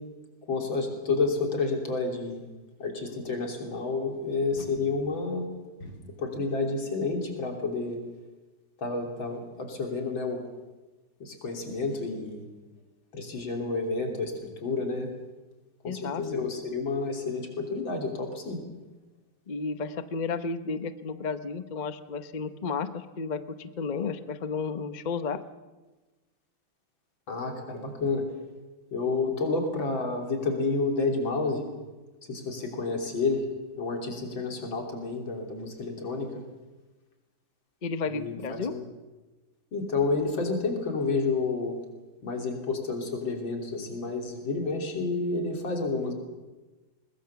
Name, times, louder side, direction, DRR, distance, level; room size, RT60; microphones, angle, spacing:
voice 1, 0.5-2.4 2.8-5.5 5.8-5.9 6.2-8.0 8.8-10.4 11.2-12.4 13.1-15.1 15.8-18.6 27.3-28.2 28.9-31.6 32.3-33.4 33.8-36.3 38.1-38.8 39.7-41.8 42.2-46.1, left 3 dB, 85° left, 3 dB, 4.0 m, -30 dB
voice 2, 15.8-16.5 19.5-25.4 37.8-38.8, left 5 dB, 35° left, 11 dB, 0.7 m, -33 dB
21.5 x 20.5 x 7.0 m, 1.2 s
omnidirectional pair, 2.1 m